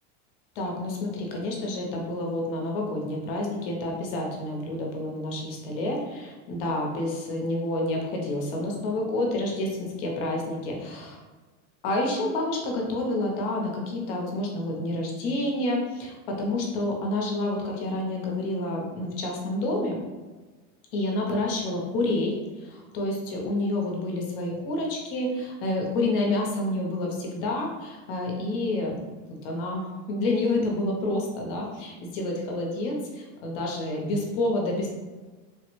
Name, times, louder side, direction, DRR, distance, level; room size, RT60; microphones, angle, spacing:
voice 1, 0.6-11.2 11.8-20.0 20.9-29.0 29.4-34.9, left 2 dB, 50° left, 0 dB, 0.7 m, -29 dB
3.3 x 2.1 x 3.0 m, 1.3 s
supercardioid pair, 175°, 35 cm